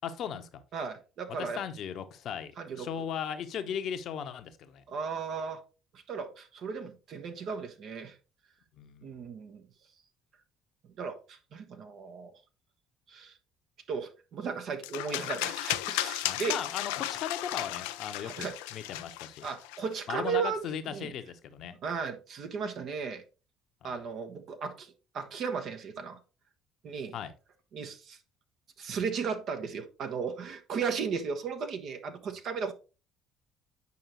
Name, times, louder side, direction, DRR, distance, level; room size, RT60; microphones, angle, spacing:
voice 1, 0.0-0.5 1.3-2.5 2.8-4.8 8.8-9.1 16.2-19.5 20.1-21.7 23.8-24.0 27.1-27.3, left 8 dB, 55° left, 0.9 m, -37 dB
voice 2, 0.7-1.6 2.6-2.9 4.9-5.6 6.1-8.1 9.0-9.6 11.0-12.3 13.1-13.3 13.9-16.6 18.2-18.5 19.4-21.1 21.8-23.2 23.8-26.2 26.8-27.2 27.7-28.2 28.8-32.7, right 6 dB, 55° right, 1.1 m, -35 dB
sound 1, 14.8-20.0, left 15 dB, 75° left, 0.4 m, -35 dB
8.3 x 5.3 x 3.0 m
hypercardioid pair, 55°, 0 cm